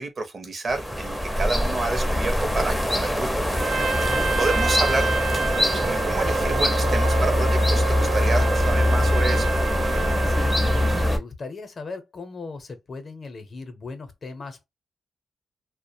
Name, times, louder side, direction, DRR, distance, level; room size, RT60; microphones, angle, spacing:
voice 1, 0.0-3.3 4.4-5.1 5.4-5.5 5.7-9.5, right 3 dB, 40° right, 0.6 m, -29 dB
sound 1, 0.7-11.2, left 1 dB, ahead, 0.5 m, -23 dB
Trumpet, 3.5-11.2, right 5 dB, 85° right, 0.6 m, -29 dB
voice 2, 4.0-4.4 10.2-10.6 11.0-14.6, left 4 dB, 45° left, 0.6 m, -38 dB
2.3 x 2.0 x 2.6 m
cardioid pair, 105°, 0 cm